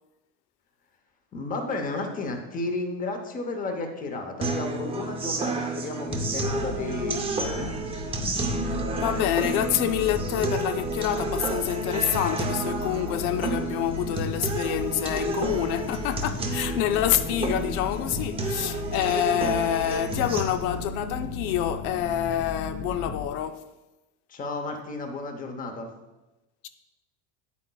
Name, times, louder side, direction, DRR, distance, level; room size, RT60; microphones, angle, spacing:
voice 1, 1.3-7.7 24.3-25.9, left 3 dB, 20° left, 0.8 m, -33 dB
sound 1, 4.4-20.4, right 3 dB, 15° right, 0.6 m, -31 dB
sound 2, 6.1-23.3, left 3 dB, 70° left, 1.7 m, -35 dB
voice 2, 8.7-23.7 26.6-26.7, left 11 dB, 90° left, 0.6 m, -27 dB
8.9 x 8.3 x 2.3 m
cardioid pair, 150°, 41 cm